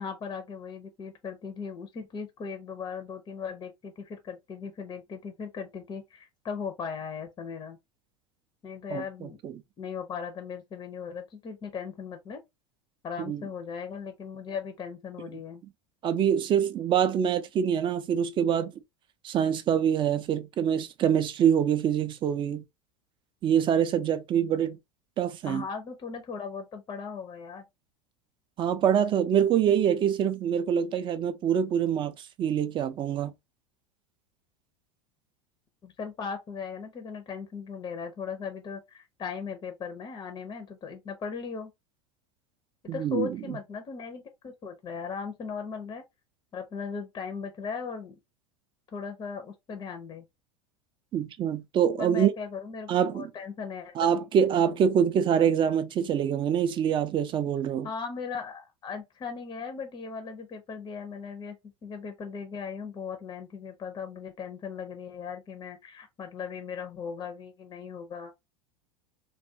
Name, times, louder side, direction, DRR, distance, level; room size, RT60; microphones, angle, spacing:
voice 1, 0.0-7.8 8.6-9.4 9.8-12.4 13.0-15.6 25.4-27.6 35.8-41.7 42.9-46.0 46.5-48.1 48.9-50.2 52.0-54.1 57.8-61.6 61.8-68.3, left 6 dB, 30° left, 0.5 m, -38 dB
voice 2, 8.9-9.5 13.3-13.4 16.0-18.7 19.2-22.6 23.4-24.8 25.2-25.6 28.6-33.3 42.9-43.6 51.1-52.3 52.9-53.3 54.0-57.9, right 8 dB, 35° right, 0.4 m, -25 dB
2.3 x 2.2 x 2.6 m
hypercardioid pair, 90°, 15 cm